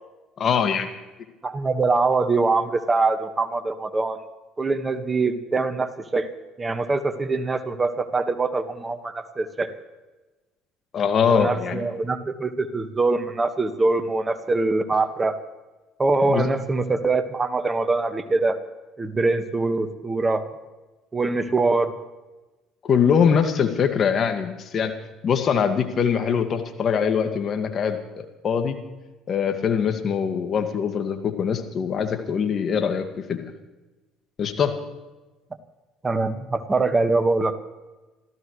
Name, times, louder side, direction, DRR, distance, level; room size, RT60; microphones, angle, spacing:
voice 1, 0.4-0.9 10.9-11.8 16.3-16.5 22.8-24.9 25.2-28.0 28.4-28.8 29.3-33.5 34.4-34.8, left 7 dB, 45° left, 6 dB, 2.0 m, -22 dB
voice 2, 1.4-4.2 4.6-6.3 6.6-9.7 11.3-15.4 16.0-18.6 19.0-20.4 21.1-21.9 36.0-37.6, right 3 dB, 25° right, 9 dB, 1.6 m, -23 dB
27.0 x 15.0 x 3.3 m, 1.1 s
hypercardioid pair, 60°, 0 cm